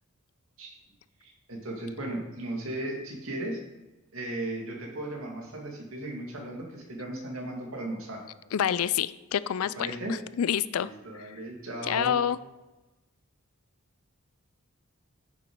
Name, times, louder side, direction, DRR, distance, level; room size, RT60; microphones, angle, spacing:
voice 1, 1.2-3.6 4.1-8.2 9.8-10.1 10.7-12.2, right 1 dB, 70° right, 0 dB, 2.1 m, -36 dB
voice 2, 8.5-10.9 11.2-11.3 11.8-12.4, left 9 dB, 75° left, 17 dB, 0.4 m, -28 dB
9.0 x 6.8 x 4.6 m, 1.1 s
head